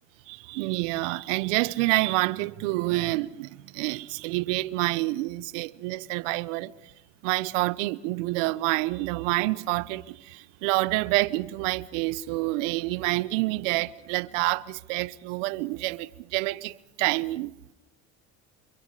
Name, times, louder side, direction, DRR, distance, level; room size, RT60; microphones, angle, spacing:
voice 1, 0.3-6.9 7.2-17.5, right 20 dB, 85° right, 0.9 m, -28 dB
30.0 x 27.0 x 4.9 m
supercardioid pair, 95°, 36 cm